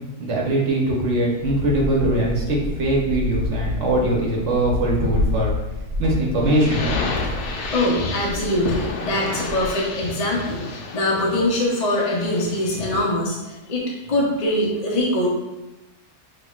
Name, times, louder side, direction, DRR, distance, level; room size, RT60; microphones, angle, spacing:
voice 1, 0.2-5.5 6.0-6.9, right 1 dB, 55° right, -2 dB, 1.1 m, -21 dB
sound 1, 1.4-9.8, left 2 dB, 85° right, 1.2 m, -29 dB
sound 2, 6.4-13.1, left 3 dB, 80° left, 0.5 m, -31 dB
voice 2, 7.6-15.3, left 1 dB, 35° left, -4 dB, 0.6 m, -23 dB
5.8 x 2.8 x 2.4 m, 1.0 s
omnidirectional pair, 1.6 m